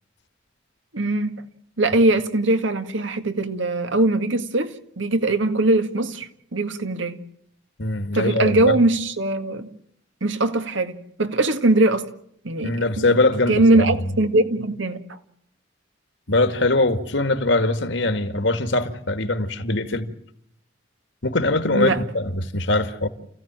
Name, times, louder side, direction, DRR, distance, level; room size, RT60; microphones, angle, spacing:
voice 1, 0.9-1.4 1.8-7.2 8.1-9.7 10.2-12.1 12.4-13.2 13.5-15.0 21.7-22.0, right 2 dB, 80° right, 1.9 m, -21 dB
voice 2, 7.8-8.8 12.6-14.2 16.3-20.1 21.2-23.1, left 2 dB, 70° left, 2.2 m, -22 dB
29.5 x 16.0 x 9.0 m
head